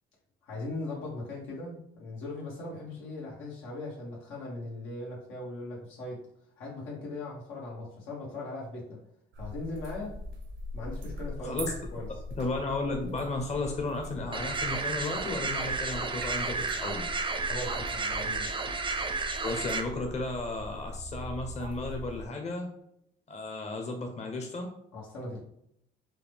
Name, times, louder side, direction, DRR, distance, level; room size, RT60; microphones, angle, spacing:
voice 1, 0.4-6.3 6.6-9.0 9.4-10.2 10.7-11.6 11.9-12.1 17.4-18.6 24.9-25.4, left 2 dB, 90° left, -4 dB, 1.4 m, -39 dB
sound 1, 9.3-22.3, equal, 70° right, 0.7 m, -41 dB
voice 2, 11.4-11.7 12.4-17.0 19.4-22.7 23.3-24.7, left 2 dB, 35° left, 3 dB, 0.8 m, -34 dB
sound 2, 14.3-19.8, right 4 dB, 25° right, 0.5 m, -32 dB
4.6 x 2.2 x 3.5 m, 0.75 s
cardioid pair, 90°, 20 cm